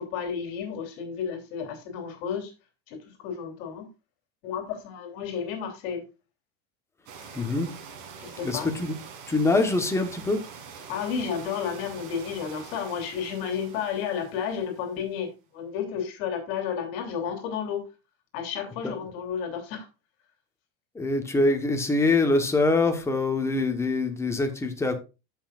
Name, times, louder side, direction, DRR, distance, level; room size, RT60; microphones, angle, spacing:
voice 1, 0.0-2.5 2.9-3.9 4.4-6.0 8.2-8.7 10.9-17.8 18.3-19.9, left 7 dB, 65° left, 3.0 m, -32 dB
sound 1, 7.1-15.0, right 6 dB, 55° right, 2.5 m, -45 dB
voice 2, 7.4-7.7 8.4-9.0 9.3-10.4 18.8-18.9 20.9-25.0, left 2 dB, 10° left, 1.2 m, -24 dB
15.0 x 5.7 x 2.5 m
cardioid pair, 160°, 30 cm